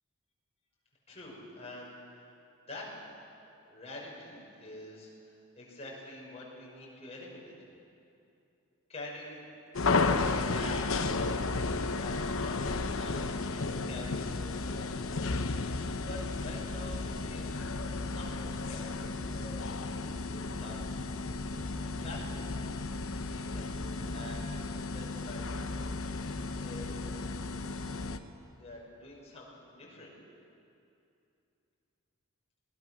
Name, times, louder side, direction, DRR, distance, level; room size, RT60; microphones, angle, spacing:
voice 1, 1.1-2.3 2.7-3.1 3.7-7.5 8.9-9.5 9.7-13.4 13.8-14.9 16.0-20.8 21.5-22.5 23.3-26.0 26.6-27.3 27.8-28.2 28.6-30.1, left 1 dB, 30° left, -4 dB, 5.8 m, -47 dB
sound 1, 9.7-28.2, left 3 dB, 65° left, 0.9 m, -33 dB
24.5 x 19.0 x 6.4 m, 2.6 s
head